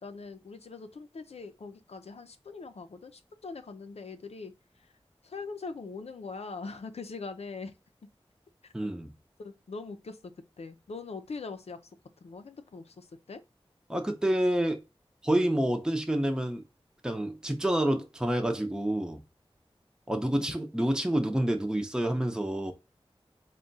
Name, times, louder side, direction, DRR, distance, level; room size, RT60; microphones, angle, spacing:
voice 1, 0.0-4.5 5.2-7.7 8.8-8.9 9.4-10.2 10.6-11.8 12.2-13.4 20.3-20.5, left 4 dB, 90° left, 0.5 m, -42 dB
voice 2, 8.7-9.1 13.9-14.8 15.2-16.6 17.0-19.2 20.1-22.7, right 1 dB, 5° right, 0.6 m, -28 dB
3.6 x 2.2 x 3.8 m
wide cardioid pair, 45°, 10 cm